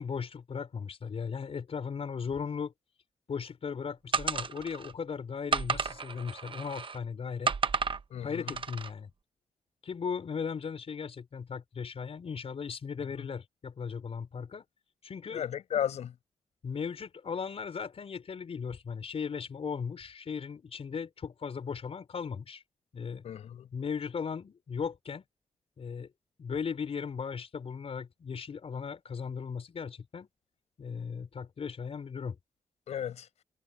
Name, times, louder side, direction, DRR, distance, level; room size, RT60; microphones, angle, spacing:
voice 1, 0.0-2.7 3.3-7.5 8.2-9.1 9.8-14.6 15.0-15.4 16.6-22.6 22.9-23.3 23.7-25.2 25.8-26.1 26.4-30.3 30.8-32.4, left 6 dB, 65° left, 5.1 m, -37 dB
sound 1, 4.1-4.9 5.5-7.0 7.5-8.0 8.5-8.9, right 5 dB, 50° right, 1.0 m, -32 dB
voice 2, 8.1-8.6 15.3-16.1 23.2-23.7 32.9-33.3, left 9 dB, 85° left, 5.5 m, -34 dB
cardioid pair, 60°, 11 cm